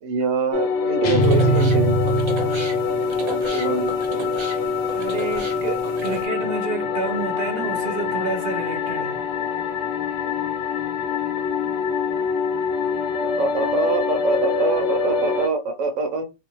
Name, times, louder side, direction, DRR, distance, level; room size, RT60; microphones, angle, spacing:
voice 1, 0.0-1.9 3.2-4.6 13.2-16.2, right 4 dB, 80° right, 1.0 m, -25 dB
sound 1, 0.5-15.5, left 5 dB, 70° left, 0.8 m, -25 dB
sound 2, 1.0-3.1, right 1 dB, 50° left, 0.5 m, -21 dB
sound 3, 1.2-6.2, right 2 dB, 35° right, 0.5 m, -35 dB
voice 2, 4.9-9.2, right 4 dB, 60° right, 0.9 m, -30 dB
3.7 x 2.5 x 3.0 m
omnidirectional pair, 1.3 m